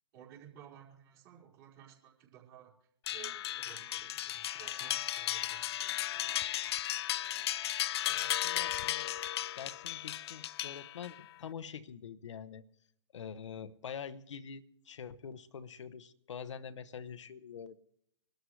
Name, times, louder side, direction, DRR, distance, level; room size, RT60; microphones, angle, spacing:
voice 1, 0.1-2.7 3.1-6.4, right 10 dB, 45° right, -2 dB, 4.7 m, -55 dB
sound 1, 3.1-11.2, left 13 dB, 55° left, 0.5 m, -35 dB
voice 2, 8.1-9.1 9.5-12.6 13.1-17.8, left 7 dB, 70° left, 12 dB, 0.9 m, -45 dB
23.5 x 13.0 x 3.3 m, 0.68 s
figure-of-eight pair, 115°, 16 cm